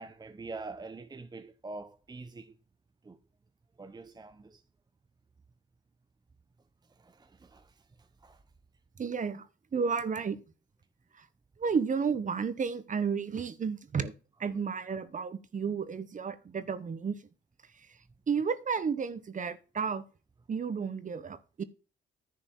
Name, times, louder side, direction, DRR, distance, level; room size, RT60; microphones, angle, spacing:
voice 1, 0.0-2.5 3.1-3.2 3.8-4.6 7.0-7.7 8.2-8.4, right 3 dB, 20° right, 0.8 m, -44 dB
voice 2, 9.0-9.5 9.7-10.4 11.1-11.3 11.6-14.1 14.4-17.2 17.7-18.0 18.3-20.0 20.5-21.6, right 6 dB, 40° right, 1.3 m, -32 dB
10.5 x 5.0 x 7.4 m
cardioid pair, 90°, 20 cm